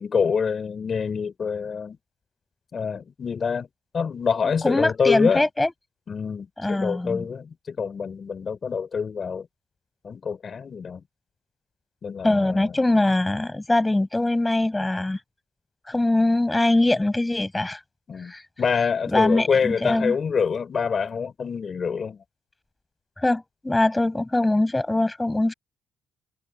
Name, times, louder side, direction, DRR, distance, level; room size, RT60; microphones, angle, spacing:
voice 1, 0.0-2.0 2.7-3.7 3.9-5.5 6.1-9.5 10.0-11.0 12.0-12.7 18.1-18.3 18.6-22.2, left 6 dB, 40° left, 5.8 m, -26 dB
voice 2, 4.6-5.7 6.6-7.3 12.2-15.2 15.9-17.8 18.2-18.5 19.1-20.2 23.2-25.5, left 2 dB, 10° left, 7.7 m, -22 dB
cardioid pair, 115°, 0 cm